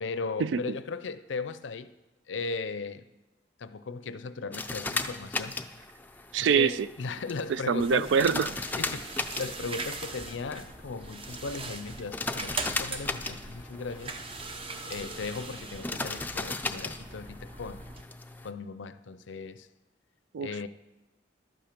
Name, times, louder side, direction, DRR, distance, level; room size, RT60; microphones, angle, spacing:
voice 1, 0.0-1.9 2.3-3.0 3.6-5.6 6.4-8.1 8.7-14.2 14.9-17.9 18.4-19.7 20.4-20.7, left 4 dB, 75° left, 0.5 m, -37 dB
sound 1, 4.5-18.5, left 3 dB, 10° left, 0.4 m, -37 dB
voice 2, 6.3-6.7 7.7-8.5 20.3-20.5, right 6 dB, 75° right, 0.3 m, -24 dB
sound 2, 7.8-18.0, right 3 dB, 30° right, 0.7 m, -41 dB
12.0 x 8.7 x 5.1 m
head